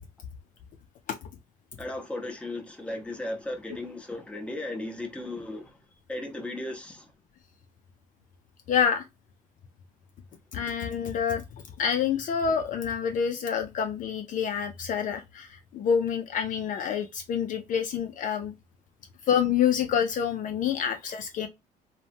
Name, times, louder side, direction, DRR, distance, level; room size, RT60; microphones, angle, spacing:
voice 1, 1.8-5.8 6.1-7.1, left 1 dB, 5° left, 0.9 m, -36 dB
voice 2, 8.7-9.0 10.5-18.5 19.3-21.5, left 7 dB, 50° left, 0.4 m, -27 dB
3.0 x 2.1 x 2.6 m
cardioid pair, 110°, 17 cm